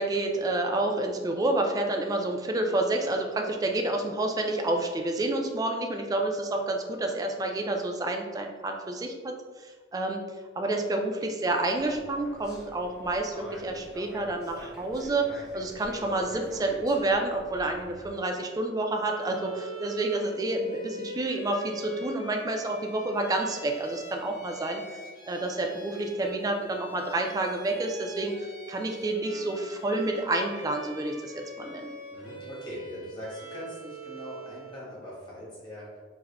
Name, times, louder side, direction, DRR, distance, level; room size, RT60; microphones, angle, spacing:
voice 1, 0.0-10.3 10.6-31.9, right 2 dB, 20° right, 3 dB, 0.3 m, -29 dB
sound 1, 11.8-18.2, equal, 5° right, 0.8 m, -47 dB
Bowed string instrument, 19.1-34.9, right 1 dB, 55° left, 1.2 m, -44 dB
voice 2, 32.1-36.0, left 1 dB, 25° left, -6 dB, 1.2 m, -41 dB
3.5 x 2.1 x 3.3 m, 1.4 s
head